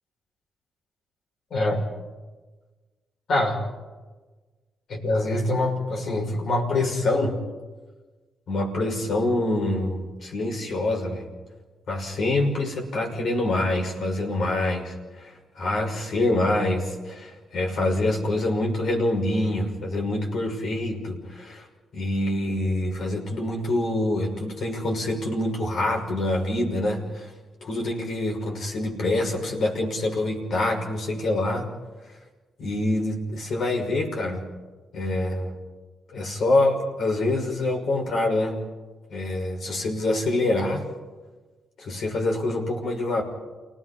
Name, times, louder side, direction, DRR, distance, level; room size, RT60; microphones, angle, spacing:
voice 1, 1.5-1.9 3.3-3.6 4.9-7.4 8.5-11.3 11.9-21.7 21.9-27.3 27.6-31.7 32.6-34.5 34.9-35.6 36.1-38.6 39.1-40.9 41.8-43.2, left 2 dB, 65° left, 1 dB, 6.0 m, -25 dB
30.0 x 18.0 x 5.7 m, 1.3 s
supercardioid pair, 50°, 0 cm